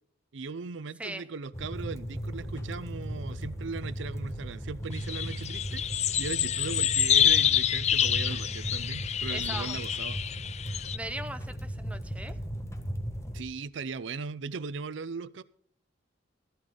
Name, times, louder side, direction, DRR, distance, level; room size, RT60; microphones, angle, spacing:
voice 1, 0.3-10.2 13.3-15.4, right 4 dB, 70° right, 0.5 m, -38 dB
sound 1, 1.5-13.4, equal, 15° left, 1.5 m, -37 dB
sound 2, 5.0-11.0, left 10 dB, 35° left, 0.4 m, -27 dB
voice 2, 9.3-9.8 10.7-12.4, right 1 dB, 5° right, 0.7 m, -39 dB
13.5 x 12.5 x 3.8 m
head